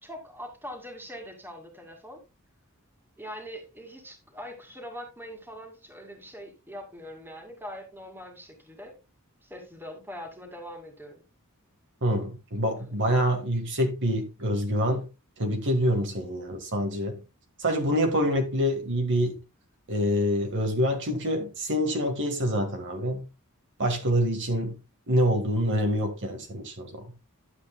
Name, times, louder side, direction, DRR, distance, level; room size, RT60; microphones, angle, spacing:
voice 1, 0.0-2.2 3.2-9.0 9.4-11.2 12.8-12.9, equal, 10° right, 2.2 m, -42 dB
voice 2, 12.0-15.1 15.4-17.2 17.6-19.4 19.9-23.3 23.8-24.8 25.1-27.1, equal, 55° right, 1.6 m, -26 dB
11.5 x 7.8 x 2.2 m
head